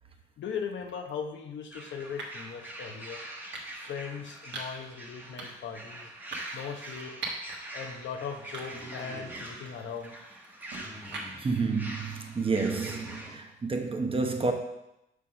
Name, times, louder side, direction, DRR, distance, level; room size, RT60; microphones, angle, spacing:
voice 1, 0.4-3.2 3.8-6.1 6.5-7.1 7.7-10.1, left 6 dB, 70° left, 1.0 m, -38 dB
sound 1, 0.9-1.1 2.2-2.5 3.5-4.0 4.5-4.9 5.4-5.7 6.3-7.6 8.0-8.1 8.5-9.0 9.4-11.6, right 3 dB, 65° right, 1.6 m, -42 dB
sound 2, 1.7-13.3, right 1 dB, 10° right, 1.3 m, -44 dB
Animal, 8.7-9.9 10.6-11.7 12.5-13.5, left 1 dB, 15° left, 1.4 m, -46 dB
voice 2, 11.4-14.5, right 4 dB, 25° right, 0.9 m, -29 dB
6.5 x 3.6 x 6.1 m
cardioid pair, 90°, 20 cm